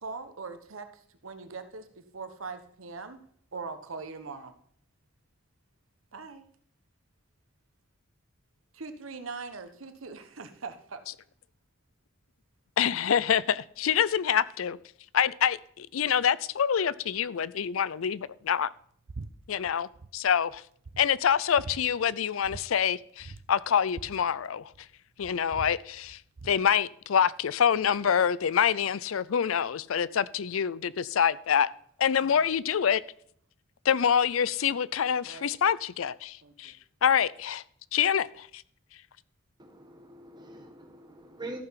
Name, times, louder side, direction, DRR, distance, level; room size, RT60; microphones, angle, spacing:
voice 1, 0.0-0.9 1.2-3.2 3.5-4.5 6.1-6.4 8.8-11.0 32.2-32.3 35.2-35.5 36.4-36.7, right 4 dB, 85° right, 9 dB, 1.1 m, -41 dB
voice 2, 12.8-14.8 15.1-18.7 19.5-20.6 21.0-24.7 25.2-26.2 26.4-31.7 32.0-33.0 33.8-36.7 37.0-37.6 37.9-38.6, left 8 dB, 80° left, 19 dB, 0.5 m, -26 dB
sound 1, 19.1-19.3 19.6-20.1 20.5-20.6 20.9-21.8 22.4-22.7 22.9-23.0 23.2-24.9 25.2-26.6, right 3 dB, 70° right, 0.7 m, -43 dB
voice 3, 39.6-41.6, right 2 dB, 20° right, 3 dB, 1.8 m, -44 dB
14.0 x 5.8 x 5.7 m, 0.62 s
head